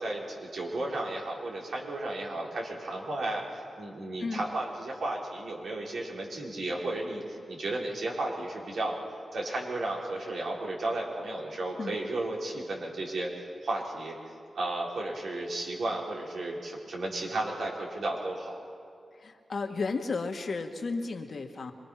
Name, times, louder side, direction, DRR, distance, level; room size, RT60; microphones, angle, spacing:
voice 1, 0.0-9.0 9.3-18.6, right 2 dB, 75° right, -3 dB, 5.2 m, -34 dB
voice 2, 19.2-21.7, left 4 dB, 60° left, 4 dB, 1.9 m, -33 dB
26.5 x 22.0 x 6.0 m, 2.4 s
cardioid pair, 60°, 0 cm